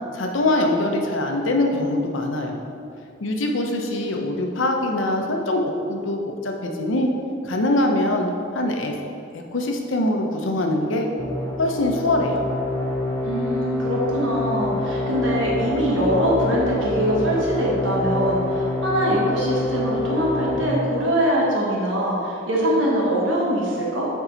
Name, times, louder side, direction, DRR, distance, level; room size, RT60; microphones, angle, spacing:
voice 1, 0.1-2.6 3.2-5.6 5.9-7.1 7.4-8.3 8.5-8.9 9.3-11.1 11.6-12.4, left 1 dB, 80° left, 2 dB, 0.7 m, -23 dB
sound 1, 11.2-20.6, left 1 dB, 15° left, 0.7 m, -26 dB
voice 2, 13.2-24.1, equal, 75° right, -4 dB, 1.3 m, -23 dB
7.2 x 4.6 x 4.0 m, 2.5 s
head